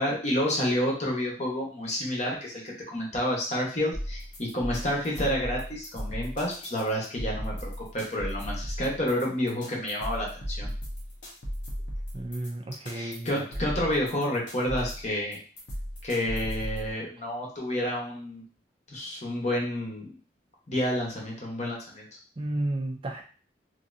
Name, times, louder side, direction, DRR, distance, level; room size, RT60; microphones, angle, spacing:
voice 1, 0.0-10.7 12.9-15.4 16.0-18.4 18.9-20.2 20.7-22.1, left 1 dB, 40° left, -3 dB, 1.0 m, -29 dB
sound 1, 3.9-16.9, equal, 85° left, 1.0 m, -36 dB
voice 2, 12.1-13.5 22.4-23.2, right 1 dB, 30° right, 2 dB, 0.4 m, -32 dB
3.2 x 2.7 x 2.5 m, 0.40 s
head